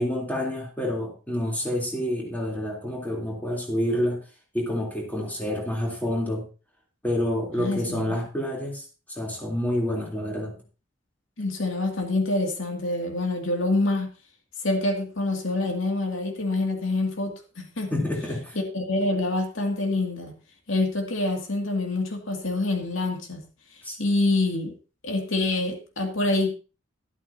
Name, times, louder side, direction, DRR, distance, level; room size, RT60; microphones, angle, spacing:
voice 1, 0.0-4.2 4.5-6.4 7.0-10.5 17.9-18.6 23.8-24.0, left 1 dB, 10° left, -2 dB, 3.4 m, -28 dB
voice 2, 7.5-8.2 11.4-14.1 14.6-17.9 18.5-20.3 20.7-24.7 25.0-26.5, left 2 dB, 85° left, 2 dB, 2.5 m, -26 dB
13.0 x 12.5 x 2.8 m, 0.34 s
head